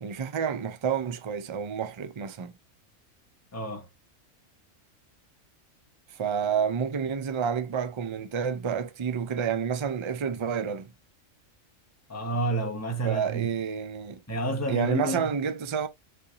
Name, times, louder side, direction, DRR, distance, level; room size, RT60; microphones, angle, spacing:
voice 1, 0.0-2.5 6.1-10.9 13.0-14.2 14.7-15.9, right 7 dB, 45° right, 0.4 m, -29 dB
voice 2, 3.5-3.9 12.1-13.5 14.3-15.3, right 2 dB, 15° left, 1.1 m, -30 dB
5.8 x 3.4 x 2.6 m
omnidirectional pair, 1.3 m